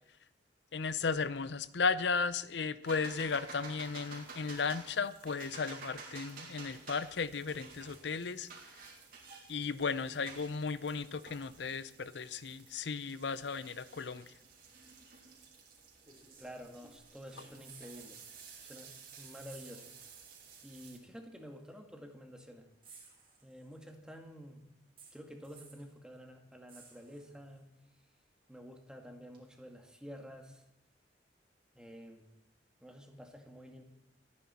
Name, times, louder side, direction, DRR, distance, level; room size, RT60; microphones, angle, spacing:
voice 1, 0.7-8.5 9.5-14.2, left 5 dB, 70° left, 16 dB, 0.6 m, -35 dB
sound 1, 2.8-21.0, right 4 dB, 55° right, 3.1 m, -52 dB
sound 2, 15.2-15.3 16.0-17.1 17.4-18.3 18.6-18.7 19.5-20.3 21.4-21.5 22.8-23.9 25.0-25.9 26.7-27.6 29.3-29.4, right 5 dB, 30° right, 3.8 m, -58 dB
voice 2, 16.4-18.2 18.6-20.0 20.6-22.7 23.4-24.6 25.1-27.7 28.5-30.6 31.8-32.3 32.8-33.8, equal, 5° right, 3 dB, 1.8 m, -50 dB
28.0 x 9.7 x 4.3 m, 0.85 s
head